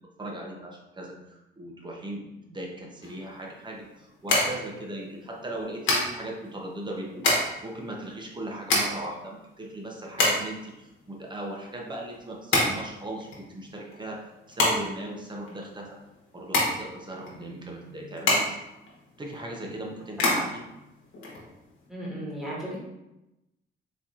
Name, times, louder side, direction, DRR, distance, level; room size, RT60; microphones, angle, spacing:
voice 1, 0.2-16.0 16.3-18.6 19.2-20.6, right 1 dB, 25° right, -1 dB, 0.7 m, -38 dB
sound 1, 3.0-21.9, left 2 dB, 75° left, 1.1 m, -29 dB
voice 2, 21.9-22.8, right 1 dB, ahead, -6 dB, 1.4 m, -35 dB
4.1 x 2.9 x 2.5 m, 0.94 s
cardioid pair, 90°, 20 cm